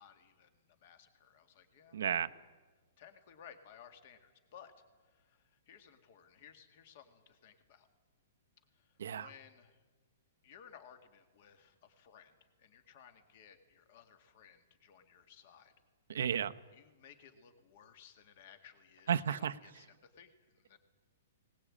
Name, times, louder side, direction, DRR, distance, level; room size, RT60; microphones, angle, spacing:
voice 1, 0.0-2.5 3.0-4.7 5.0-7.9 8.7-9.8 10.4-15.7 16.7-20.8, left 8 dB, 35° left, 8 dB, 2.0 m, -59 dB
voice 2, 1.9-2.3 9.0-9.3 16.1-16.5 19.1-19.5, right 8 dB, 65° right, 10 dB, 0.9 m, -32 dB
21.0 x 19.5 x 8.7 m, 1.3 s
hypercardioid pair, 180°, 0 cm